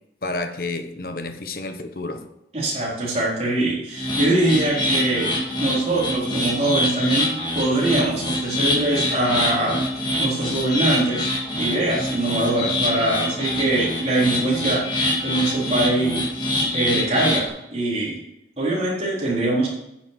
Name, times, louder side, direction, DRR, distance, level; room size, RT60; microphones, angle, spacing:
voice 1, 0.2-2.3, left 2 dB, 55° left, 7 dB, 1.0 m, -30 dB
voice 2, 2.5-5.3 5.6-7.3 7.5-11.3 11.6-14.8 15.2-16.2 16.7-18.2 18.6-19.7, right 2 dB, 35° right, -6 dB, 4.3 m, -23 dB
sound 1, 3.9-17.5, left 1 dB, 25° left, 2.5 m, -25 dB
10.0 x 6.5 x 6.9 m, 0.85 s
head